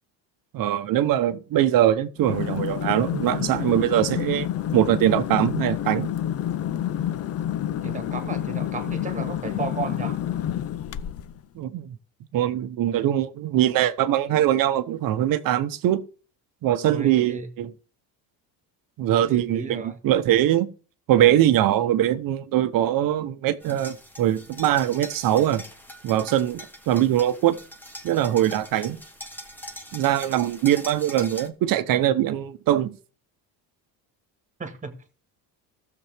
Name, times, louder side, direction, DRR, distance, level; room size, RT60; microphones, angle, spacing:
voice 1, 0.5-6.1 11.5-11.9 12.3-16.0 16.6-17.7 19.0-20.7 21.1-25.6 26.0-27.6 28.0-29.0 29.9-33.0, right 12 dB, 60° right, 0.9 m, -22 dB
sound 1, 2.2-11.4, left 11 dB, 40° left, 0.5 m, -29 dB
voice 2, 7.8-10.2 16.8-17.5 19.3-20.0 28.7-28.8 34.6-35.0, right 4 dB, 20° right, 1.7 m, -34 dB
sound 2, 23.6-31.5, left 1 dB, 5° left, 1.4 m, -42 dB
15.5 x 7.0 x 3.5 m
cardioid pair, 140°, 37 cm